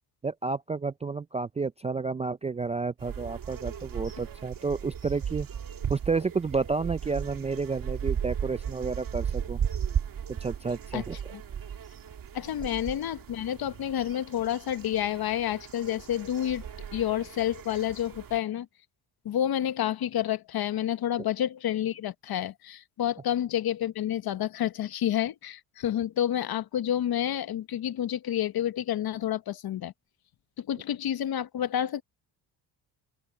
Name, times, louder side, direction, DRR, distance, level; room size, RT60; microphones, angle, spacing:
voice 1, 0.2-5.5 5.9-9.6 10.4-11.2, right 4 dB, 15° right, 0.3 m, -31 dB
sound 1, 3.0-18.4, right 8 dB, 50° right, 2.0 m, -36 dB
voice 2, 12.3-18.7 19.2-29.9 30.6-32.0, left 11 dB, 55° left, 1.1 m, -29 dB
open air
cardioid pair, 80°, 44 cm